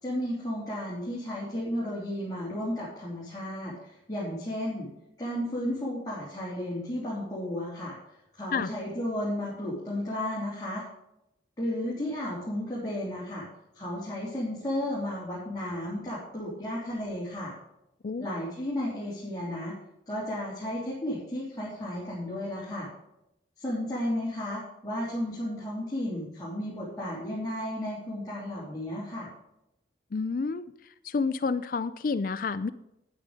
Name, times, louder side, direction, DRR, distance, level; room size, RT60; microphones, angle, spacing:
voice 1, 0.0-4.9 5.2-8.0 8.4-10.8 11.6-13.5 13.7-17.5 18.2-19.7 20.1-22.9 23.6-29.3, left 1 dB, 20° left, -8 dB, 3.1 m, -33 dB
voice 2, 30.1-30.7 31.0-32.7, left 4 dB, 50° left, 13 dB, 0.4 m, -29 dB
9.8 x 8.8 x 4.9 m, 0.86 s
head